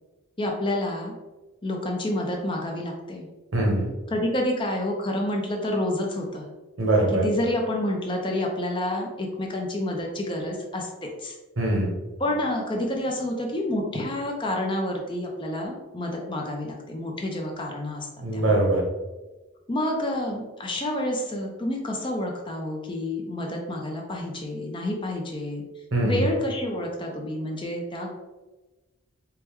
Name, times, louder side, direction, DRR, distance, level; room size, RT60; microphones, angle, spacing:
voice 1, 0.4-1.1 1.6-3.3 4.1-6.5 7.2-10.9 11.2-11.4 12.2-18.1 18.3-18.6 19.7-25.6 26.0-28.2, left 1 dB, 25° left, 0 dB, 0.5 m, -29 dB
voice 2, 3.5-3.9 6.8-7.2 11.6-12.0 18.2-18.8 25.9-26.2, right 1 dB, 65° right, 0 dB, 0.9 m, -22 dB
4.6 x 2.2 x 3.4 m, 1.1 s
head